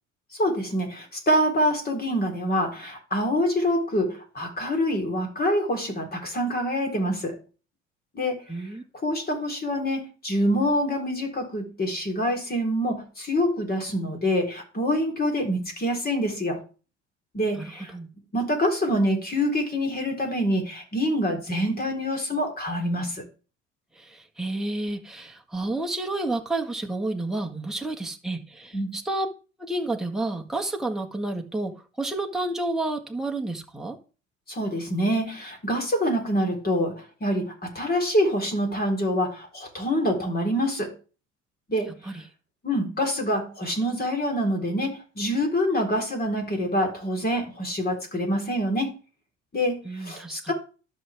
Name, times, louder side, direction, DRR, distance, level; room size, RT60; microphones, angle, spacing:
voice 1, 0.3-7.4 8.1-16.6 17.3-17.9 18.3-23.2 28.7-29.0 34.5-40.9 41.7-41.9 42.6-48.9 49.5-50.5, equal, 25° left, 4.0 m, -26 dB
voice 2, 8.5-8.8 17.6-18.1 23.9-29.3 29.6-31.7 32.0-34.0 42.0-42.2 49.8-50.5, right 2 dB, ahead, 1.7 m, -30 dB
13.0 x 6.3 x 3.5 m
figure-of-eight pair, 60°, 36 cm